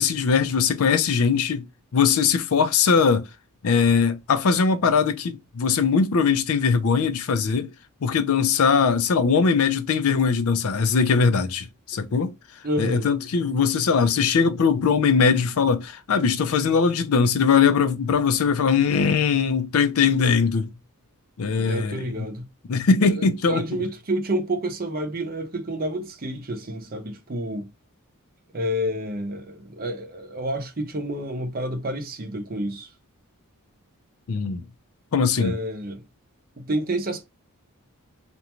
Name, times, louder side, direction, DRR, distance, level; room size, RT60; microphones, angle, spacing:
voice 1, 0.0-1.7 1.9-3.2 3.6-7.7 8.0-12.3 12.8-20.7 21.4-22.1 22.7-23.6 34.3-34.6 35.1-35.5, left 5 dB, 70° left, 0.5 m, -21 dB
voice 2, 12.6-13.1 21.5-22.5 23.0-27.7 28.5-32.9 35.4-36.0 36.6-37.2, right 1 dB, 40° right, 0.6 m, -29 dB
2.5 x 2.2 x 2.9 m
head